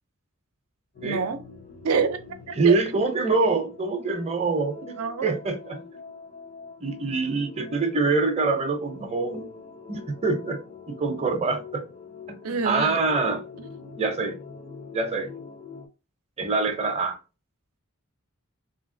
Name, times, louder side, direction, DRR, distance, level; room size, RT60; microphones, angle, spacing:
sound 1, 0.9-15.9, left 5 dB, 45° left, 0.5 m, -44 dB
voice 1, 1.0-1.4 1.8-2.2 2.5-2.8 5.0-5.3 12.4-13.0, right 5 dB, 80° right, 0.5 m, -26 dB
voice 2, 2.6-5.8 6.8-9.5 9.9-10.6 10.9-11.8 12.3-12.4 12.6-13.4 14.0-14.4 14.9-15.3 16.4-17.2, right 3 dB, 30° right, 0.6 m, -25 dB
3.0 x 2.7 x 2.5 m
head